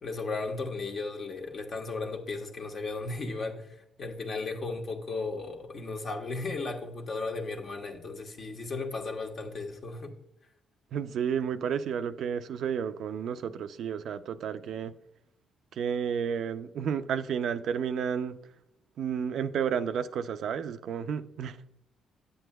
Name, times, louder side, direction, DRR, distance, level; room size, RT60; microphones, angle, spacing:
voice 1, 0.0-10.1, left 3 dB, 50° left, 1.2 m, -35 dB
voice 2, 10.9-15.0 15.7-18.4 19.0-21.6, right 7 dB, 70° right, 0.4 m, -31 dB
9.7 x 7.8 x 2.2 m
cardioid pair, 90°, 0 cm